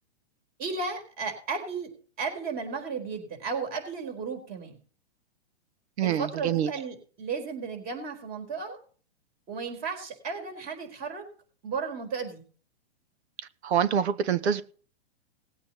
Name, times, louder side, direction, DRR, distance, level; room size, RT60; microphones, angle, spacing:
voice 1, 0.6-1.9 2.2-4.8 6.0-8.8 9.5-11.3 11.6-12.4, right 5 dB, 30° right, 4.5 m, -34 dB
voice 2, 6.0-6.7 13.6-14.6, right 8 dB, 80° right, 1.1 m, -25 dB
19.5 x 8.7 x 3.0 m
hypercardioid pair, 145°, 33 cm